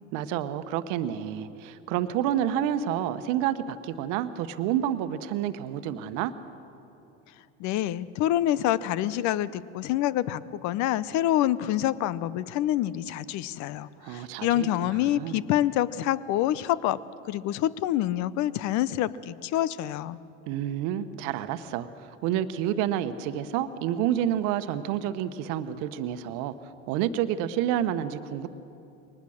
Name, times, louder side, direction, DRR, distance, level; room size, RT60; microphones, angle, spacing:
voice 1, 0.1-6.3 14.0-15.4 20.5-26.5 26.9-28.5, right 10 dB, 60° right, 11 dB, 1.2 m, -29 dB
voice 2, 7.6-17.0 17.3-20.2, left 13 dB, 50° left, 18 dB, 0.8 m, -27 dB
22.5 x 19.5 x 6.5 m, 2.8 s
hypercardioid pair, 90°, 36 cm